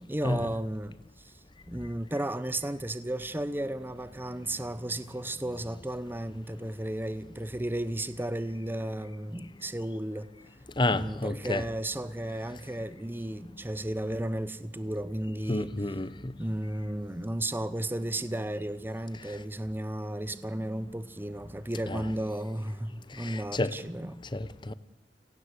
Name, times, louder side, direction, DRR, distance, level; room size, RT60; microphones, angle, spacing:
voice 1, 0.0-1.3 1.7-10.3 10.9-15.7 16.4-24.2, right 1 dB, 10° right, 0.8 m, -34 dB
voice 2, 10.8-11.6 15.5-16.3 21.9-22.0 23.2-23.7 24.3-24.7, left 2 dB, 25° left, 0.9 m, -30 dB
29.0 x 18.5 x 8.3 m
head